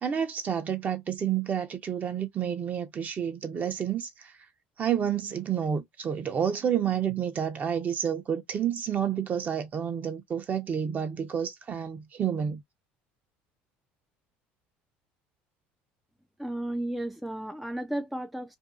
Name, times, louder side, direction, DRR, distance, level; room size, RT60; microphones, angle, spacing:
voice 1, 0.0-4.3 4.8-12.6, right 8 dB, 35° right, 0.8 m, -29 dB
voice 2, 16.4-18.6, right 1 dB, ahead, 0.4 m, -33 dB
2.6 x 2.2 x 2.5 m
supercardioid pair, 100°, 4 cm